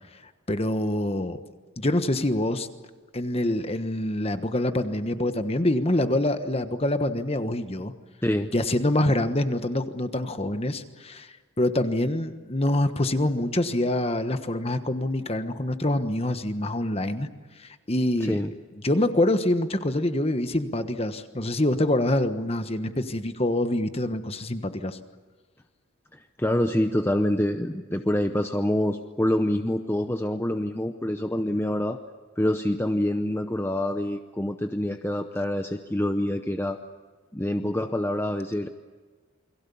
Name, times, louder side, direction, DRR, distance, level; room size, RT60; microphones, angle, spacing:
voice 1, 0.5-1.4 1.8-2.7 3.1-7.9 8.5-17.3 17.6-18.4 18.8-25.0, left 1 dB, 30° left, 9 dB, 1.3 m, -25 dB
voice 2, 26.1-32.0 32.4-36.8 37.3-38.7, left 1 dB, 10° left, 7 dB, 0.7 m, -26 dB
29.0 x 22.5 x 7.1 m, 1.4 s
head